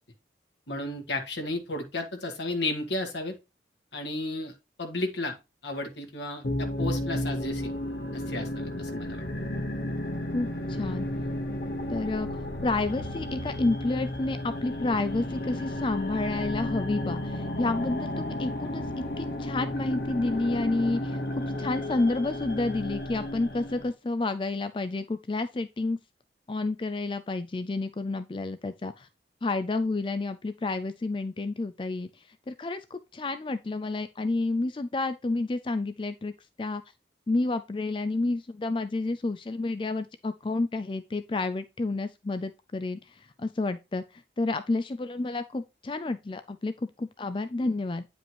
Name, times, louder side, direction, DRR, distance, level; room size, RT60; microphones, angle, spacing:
voice 1, 0.7-3.3 3.9-4.5 4.8-5.3 5.6-7.7 8.1-9.2, left 2 dB, 85° left, 1.9 m, -33 dB
sound 1, 6.4-23.9, left 1 dB, 60° left, 1.2 m, -33 dB
voice 2, 10.3-11.1 11.9-26.0 26.5-29.1 29.4-36.3 36.6-36.8 37.3-48.1, left 2 dB, 30° left, 0.4 m, -30 dB
9.3 x 5.1 x 3.0 m
head